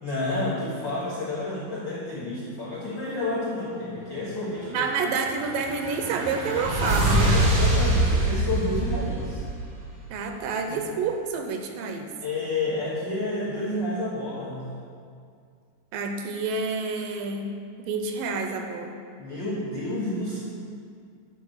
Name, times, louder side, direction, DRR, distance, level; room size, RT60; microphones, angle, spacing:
voice 1, 0.0-4.9 7.3-9.5 10.7-10.8 12.2-14.7 19.2-20.4, left 2 dB, 80° left, -7 dB, 1.0 m, -30 dB
voice 2, 4.7-7.4 10.1-12.1 15.9-18.9, right 4 dB, 80° right, 4 dB, 2.1 m, -28 dB
sound 1, 5.1-10.0, right 1 dB, 55° right, 1.0 m, -24 dB
9.6 x 5.2 x 6.4 m, 2.3 s
omnidirectional pair, 4.3 m